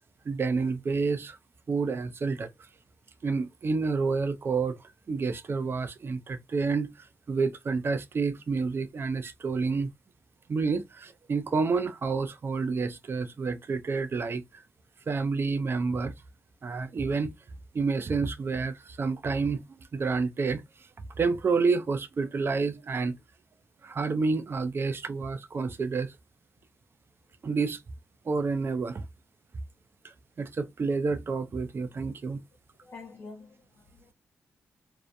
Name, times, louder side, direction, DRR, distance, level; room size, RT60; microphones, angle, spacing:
voice 1, 0.3-1.4 1.7-2.5 3.2-9.9 10.5-14.6 15.1-16.1 16.6-17.4 17.7-19.6 19.9-20.6 21.2-23.2 23.8-26.1 27.4-27.8 28.3-29.0 30.0-32.4, right 4 dB, 45° right, 0.5 m, -29 dB
voice 2, 32.8-34.1, left 3 dB, 55° left, 0.8 m, -47 dB
2.6 x 2.0 x 2.5 m
hypercardioid pair, 45°, 6 cm